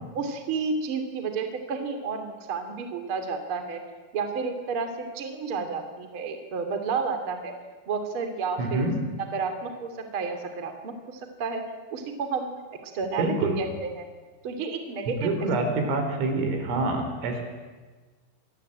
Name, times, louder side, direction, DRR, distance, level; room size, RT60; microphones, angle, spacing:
voice 1, 0.1-3.8 4.1-4.9 5.1-7.5 7.9-8.8 9.3-11.6 11.9-12.5 12.8-14.1 14.4-15.3, right 5 dB, 35° right, 6 dB, 2.7 m, -31 dB
voice 2, 8.6-9.0 13.2-13.6 15.1-17.4, right 2 dB, 75° right, 5 dB, 6.7 m, -26 dB
28.0 x 21.5 x 8.9 m, 1.3 s
omnidirectional pair, 5.9 m